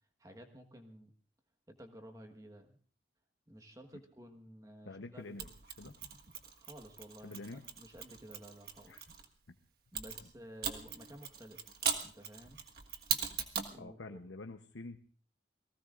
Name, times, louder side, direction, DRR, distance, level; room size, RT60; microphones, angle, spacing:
voice 1, 0.2-1.1 1.7-2.8 3.5-5.5 6.6-9.1 9.9-12.6 13.4-14.2, equal, 20° right, 5 dB, 1.3 m, -53 dB
voice 2, 4.9-5.5 5.8-6.0 7.2-7.6 8.9-9.0 13.8-15.0, left 2 dB, 85° left, 6 dB, 0.9 m, -47 dB
Mechanisms, 5.4-9.2 9.9-13.8, right 8 dB, 55° right, 1.5 m, -40 dB
29.5 x 19.0 x 2.5 m, 0.43 s
head